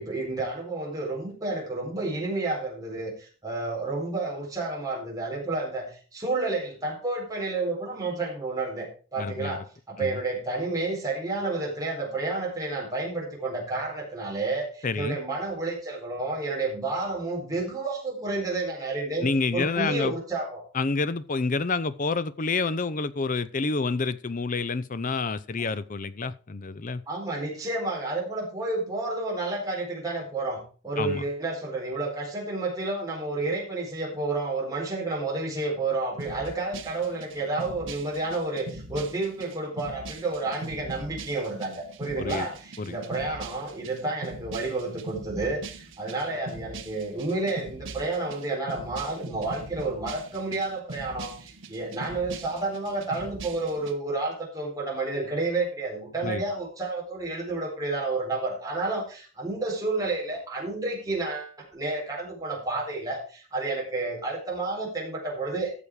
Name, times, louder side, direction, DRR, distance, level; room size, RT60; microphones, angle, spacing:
voice 1, 0.0-20.6 25.5-25.6 27.1-65.7, right 2 dB, 15° right, 4.0 m, -30 dB
voice 2, 9.2-9.6 10.0-10.2 14.8-15.2 19.2-20.1 20.7-27.0 31.0-31.2 42.2-42.5 42.8-43.0 56.2-56.4, left 4 dB, 35° left, 0.5 m, -28 dB
sound 1, 36.2-53.9, right 2 dB, 55° right, 1.2 m, -42 dB
13.5 x 6.9 x 4.8 m
head